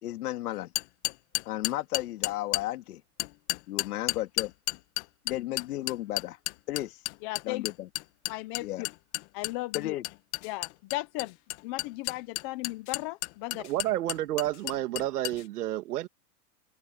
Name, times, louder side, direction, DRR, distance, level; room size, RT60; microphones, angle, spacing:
voice 1, 0.0-0.7 1.4-3.0 3.7-4.5 5.2-6.4 6.7-7.0 7.4-7.9 8.6-8.9 9.7-10.0, left 15 dB, 70° left, 3.2 m, -33 dB
sound 1, 0.8-2.6 3.2-15.4, left 23 dB, 45° left, 1.3 m, -32 dB
voice 2, 7.2-7.6 8.3-8.7 9.3-9.9 10.4-11.3 11.6-13.6, left 20 dB, 20° left, 0.3 m, -36 dB
voice 3, 13.5-16.1, right 14 dB, 75° right, 2.1 m, -30 dB
hypercardioid pair, 135°, 47 cm